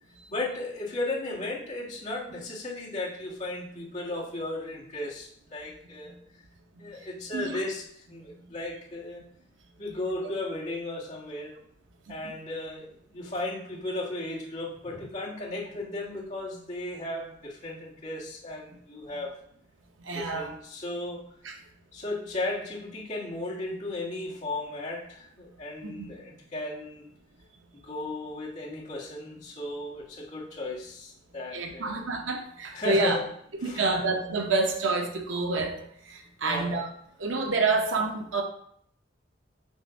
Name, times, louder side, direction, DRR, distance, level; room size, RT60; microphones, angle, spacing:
voice 1, 0.3-6.1 6.8-9.3 9.8-11.5 12.1-19.4 20.1-21.2 21.9-27.1 27.8-32.1 32.7-33.3 33.6-34.0 36.4-36.8, left 2 dB, 40° left, -6 dB, 1.7 m, -35 dB
voice 2, 20.0-20.5 21.4-21.6 25.8-26.1 31.5-33.2 33.6-35.8 36.1-36.9 37.2-38.4, right 3 dB, 80° right, 3 dB, 0.8 m, -28 dB
7.3 x 2.5 x 5.1 m, 0.67 s
head